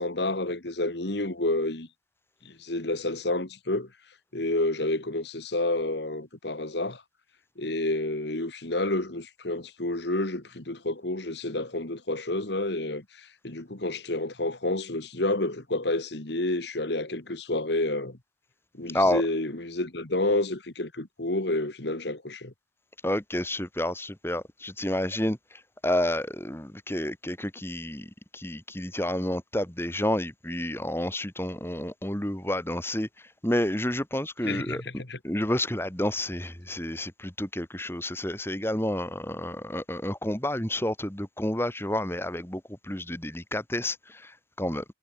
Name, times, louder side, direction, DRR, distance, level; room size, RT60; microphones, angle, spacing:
voice 1, 0.0-1.9 2.4-3.9 4.3-7.0 7.6-18.2 18.7-22.5 34.4-35.2, left 2 dB, 65° left, 2.0 m, -29 dB
voice 2, 23.0-34.8 35.2-44.8, left 1 dB, 10° left, 2.4 m, -30 dB
head